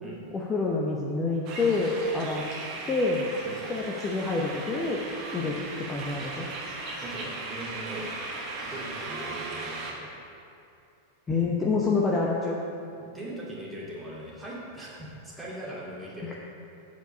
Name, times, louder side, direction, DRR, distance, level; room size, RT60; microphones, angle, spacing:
voice 1, 0.3-2.4 2.9-3.3 3.7-5.0 5.3-6.5 11.3-12.6 16.2-16.3, left 3 dB, 20° left, -3 dB, 0.8 m, -27 dB
sound 1, 1.5-9.9, right 3 dB, 40° right, 1.4 m, -37 dB
voice 2, 7.0-8.2 8.6-10.1 13.1-16.4, right 1 dB, 10° right, -6 dB, 2.2 m, -40 dB
8.0 x 4.9 x 7.0 m, 2.6 s
figure-of-eight pair, 90°, 0 cm